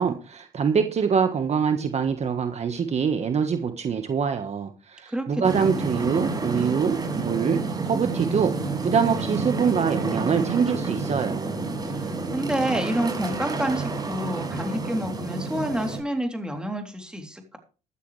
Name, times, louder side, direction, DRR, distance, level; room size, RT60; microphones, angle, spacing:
voice 1, 0.0-8.5 8.8-11.5, right 6 dB, 40° right, 6 dB, 1.5 m, -24 dB
voice 2, 5.1-5.6 11.9-17.6, right 1 dB, 5° right, 3 dB, 3.4 m, -29 dB
sound 1, 5.4-16.0, right 3 dB, 25° right, 6.1 m, -29 dB
13.0 x 13.0 x 3.4 m, 0.34 s
cardioid pair, 110°, 17 cm